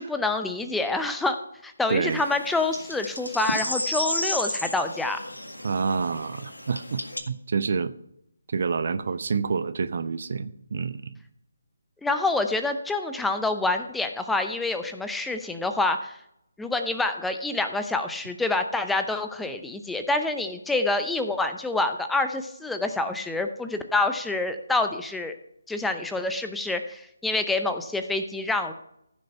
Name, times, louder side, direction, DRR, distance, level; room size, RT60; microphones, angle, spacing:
voice 1, 0.0-1.4 1.6-5.2 12.0-16.2 16.6-25.3 25.7-28.7, left 2 dB, 5° left, 7 dB, 0.6 m, -27 dB
voice 2, 1.9-2.2 5.6-7.9 8.5-11.1, right 5 dB, 50° right, 13 dB, 0.7 m, -28 dB
sound 1, 2.1-7.2, left 1 dB, 90° left, 1.8 m, -33 dB
14.5 x 6.5 x 5.6 m, 0.77 s
figure-of-eight pair, 150°, 0 cm